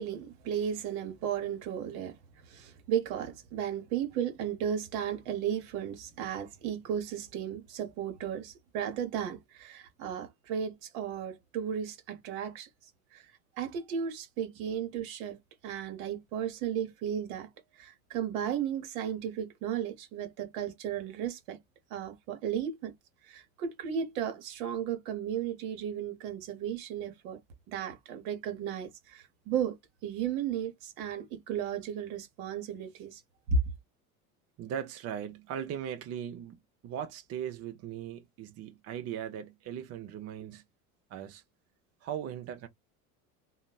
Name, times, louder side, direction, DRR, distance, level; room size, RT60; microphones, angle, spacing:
voice 1, 0.0-2.1 2.5-12.7 13.1-13.2 13.6-15.4 15.6-17.5 17.8-21.6 21.9-22.9 23.3-27.4 27.7-29.8 30.0-33.2 33.5-33.6, right 8 dB, 65° right, 1.0 m, -34 dB
voice 2, 34.6-36.6 36.8-40.6 41.1-41.4 42.0-42.7, right 9 dB, 35° right, 0.6 m, -38 dB
3.1 x 2.0 x 2.3 m
hypercardioid pair, 85°, 44 cm